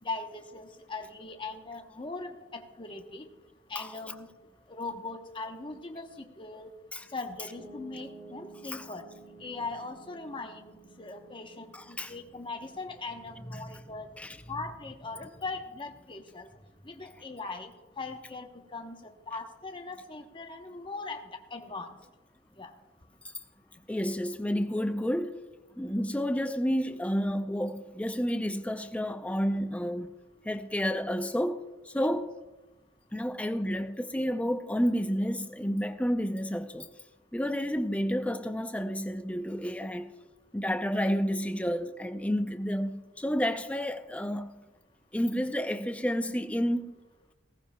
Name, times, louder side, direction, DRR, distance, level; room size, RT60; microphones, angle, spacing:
voice 1, 0.0-3.3 3.7-4.3 4.7-6.7 7.1-9.1 9.4-14.2 14.5-16.5 16.8-21.2 21.5-22.0 22.6-22.7 32.0-32.1, left 3 dB, 25° left, 0.9 m, -40 dB
Piano, 7.6-19.8, right 3 dB, 35° right, 2.2 m, -54 dB
voice 2, 11.7-12.1 13.4-13.7 14.2-14.4 23.2-23.3 23.9-25.4 25.8-30.1 30.4-32.3 33.1-36.9 37.3-40.1 40.5-44.6 45.1-47.0, equal, 5° left, 0.5 m, -30 dB
18.0 x 14.5 x 2.3 m
head